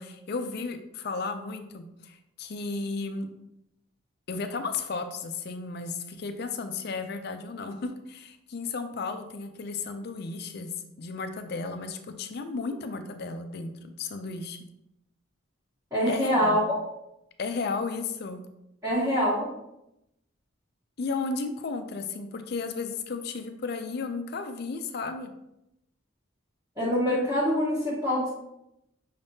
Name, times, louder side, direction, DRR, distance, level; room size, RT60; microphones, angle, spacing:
voice 1, 0.0-3.3 4.3-10.7 11.0-14.6 16.1-16.6 17.4-18.4 21.0-25.3, left 4 dB, 50° left, 7 dB, 0.4 m, -34 dB
voice 2, 15.9-16.6 18.8-19.5 26.8-28.3, equal, 15° right, -11 dB, 1.2 m, -25 dB
5.6 x 3.5 x 2.7 m, 0.85 s
head